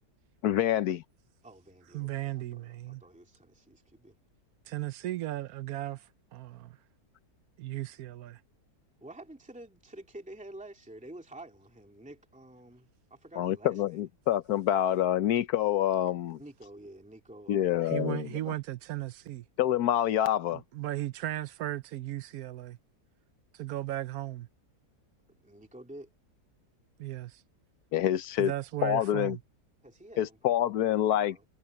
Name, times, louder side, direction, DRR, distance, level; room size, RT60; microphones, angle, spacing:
voice 1, 0.4-1.0 13.4-16.4 17.5-18.4 19.6-20.6 27.9-28.5 28.8-29.4 30.2-31.4, left 11 dB, 70° left, 1.3 m, -27 dB
voice 2, 1.4-4.1 9.0-14.1 16.3-18.0 25.4-26.1 28.0-28.1 29.8-30.4 30.6-30.8 31.1-31.4, right 1 dB, 5° right, 2.6 m, -49 dB
voice 3, 1.9-3.0 4.7-6.0 6.3-6.8 7.6-8.4 17.8-19.4 20.5-22.8 23.6-24.5 27.0-27.4 28.4-29.4, right 15 dB, 70° right, 1.1 m, -36 dB
omnidirectional pair, 1.7 m